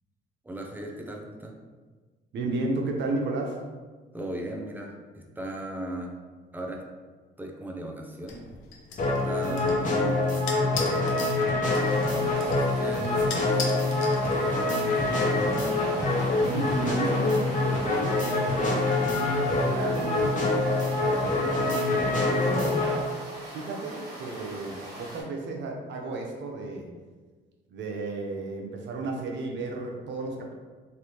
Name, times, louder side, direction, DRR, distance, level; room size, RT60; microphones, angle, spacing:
voice 1, 0.4-1.5 4.1-6.2 6.5-6.8 7.4-8.4 9.2-11.1 12.3-14.1 14.5-15.7, right 1 dB, 10° right, 1 dB, 0.5 m, -37 dB
voice 2, 2.3-3.6 16.4-18.7 19.2-22.8 23.5-26.9 27.7-30.5, right 3 dB, 65° right, 1 dB, 0.6 m, -33 dB
sound 1, 8.3-14.7, left 4 dB, 85° left, 0.5 m, -40 dB
sound 2, 9.0-23.0, left 2 dB, 40° left, 0.9 m, -25 dB
sound 3, 11.6-25.2, equal, 30° right, 1.5 m, -42 dB
3.3 x 2.4 x 2.9 m, 1.4 s
cardioid pair, 90°, 20 cm